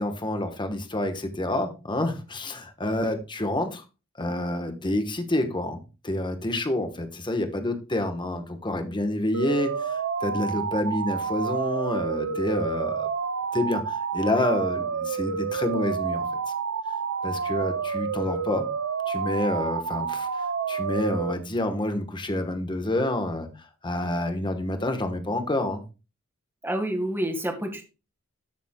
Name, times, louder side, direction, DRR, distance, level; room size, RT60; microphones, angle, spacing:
voice 1, 0.0-3.8 4.2-13.1 13.5-16.2 17.2-18.7 19.1-23.5 23.8-25.8, left 1 dB, 20° left, 7 dB, 1.2 m, -28 dB
sound 1, 9.3-21.3, right 6 dB, 65° right, 0.6 m, -29 dB
voice 2, 26.6-27.8, right 1 dB, 10° right, 5 dB, 1.6 m, -28 dB
13.0 x 7.2 x 2.3 m, 0.31 s
head